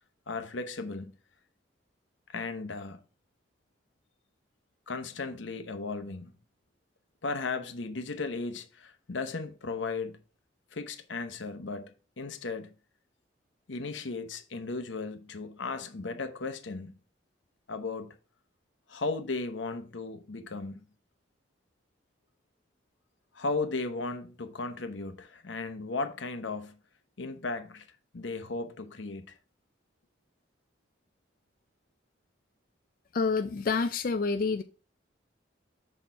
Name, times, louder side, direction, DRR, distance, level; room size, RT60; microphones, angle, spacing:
voice 1, 0.3-1.1 2.3-3.0 4.9-6.3 7.2-10.2 10.7-12.7 13.7-16.9 17.7-18.2 18.9-20.8 23.3-26.8 27.2-27.9 28.1-29.4, left 3 dB, 85° left, 0.9 m, -36 dB
voice 2, 33.1-34.6, left 4 dB, 50° left, 0.4 m, -28 dB
6.8 x 4.3 x 4.5 m
head